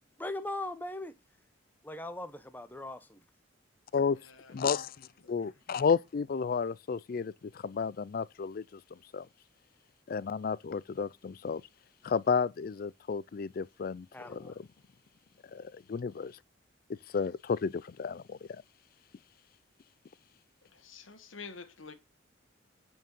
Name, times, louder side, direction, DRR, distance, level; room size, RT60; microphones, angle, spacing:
voice 1, 0.2-1.1 1.8-3.2 14.1-14.5, left 1 dB, 10° left, 0.8 m, -39 dB
voice 2, 4.5-9.3 10.1-11.6 12.0-14.7 15.5-16.4 16.9-18.4, left 5 dB, 45° left, 0.3 m, -32 dB
voice 3, 20.7-21.9, left 5 dB, 85° left, 1.3 m, -47 dB
9.1 x 4.5 x 5.2 m
head